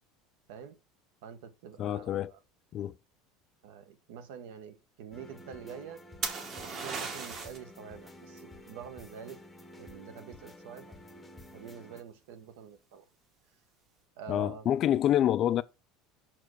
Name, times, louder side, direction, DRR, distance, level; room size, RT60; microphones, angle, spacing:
voice 1, 1.2-2.4 3.6-6.0 6.5-9.4 9.8-11.0 11.5-13.0 14.2-14.7, right 7 dB, 75° right, 1.1 m, -46 dB
voice 2, 1.8-2.3 2.7-2.9 14.3-15.6, left 11 dB, 30° left, 0.3 m, -27 dB
sound 1, 5.1-12.0, left 1 dB, 5° left, 0.8 m, -51 dB
sound 2, 6.2-7.7 11.4-11.8, right 4 dB, 30° right, 1.2 m, -36 dB
5.8 x 4.5 x 6.3 m
cardioid pair, 170°, 0 cm